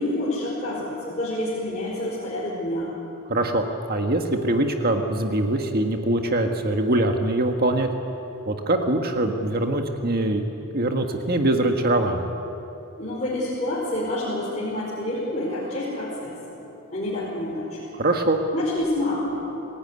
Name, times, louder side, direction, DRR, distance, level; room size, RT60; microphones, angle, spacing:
voice 1, 0.0-2.9 13.0-16.6 16.9-17.9 18.5-19.4, left 1 dB, 35° left, -7 dB, 4.9 m, -28 dB
voice 2, 3.3-7.9 8.5-10.4 10.7-12.2 18.0-18.4, right 1 dB, 45° right, 4 dB, 1.6 m, -23 dB
28.0 x 16.5 x 9.7 m, 2.9 s
head